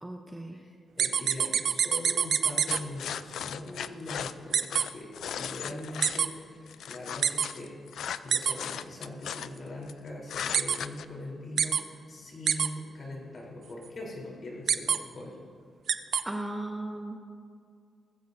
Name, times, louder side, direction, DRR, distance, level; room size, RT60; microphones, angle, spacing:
voice 1, 0.0-0.6 16.2-17.2, right 1 dB, 10° right, 2 dB, 0.7 m, -36 dB
voice 2, 0.5-5.1 5.4-7.7 8.2-15.4, left 1 dB, 40° left, -3 dB, 3.7 m, -41 dB
sound 1, 1.0-2.8 4.5-4.8 6.0-6.3 7.2-7.5 8.3-8.5 10.5-10.8 11.6-11.8 12.5-12.7 14.7-15.0 15.9-16.2, right 7 dB, 55° right, 0.5 m, -25 dB
sound 2, 2.7-6.2 6.7-9.9 10.3-11.0, left 9 dB, 75° left, 0.4 m, -37 dB
19.5 x 15.0 x 2.7 m, 2.2 s
wide cardioid pair, 170°, 0 cm